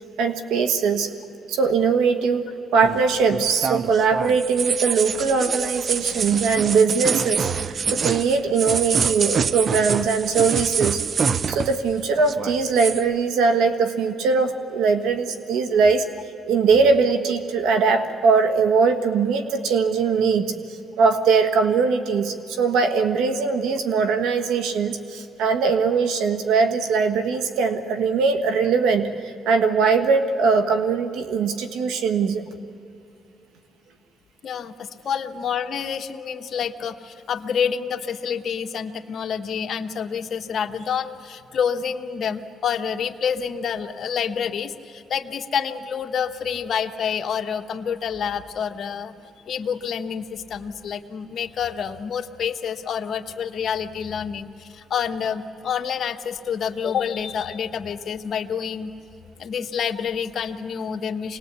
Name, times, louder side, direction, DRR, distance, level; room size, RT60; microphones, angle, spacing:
voice 1, 0.2-1.1 1.5-16.0 16.5-32.5, right 5 dB, 90° right, 7 dB, 1.4 m, -21 dB
sound 1, 2.8-11.9 12.2-13.0, right 6 dB, 45° right, 0.5 m, -26 dB
voice 2, 34.4-49.1 49.5-58.9 59.4-61.4, left 7 dB, 60° left, 5 dB, 1.2 m, -28 dB
25.5 x 19.5 x 8.3 m, 2.8 s
cardioid pair, 90°, 0 cm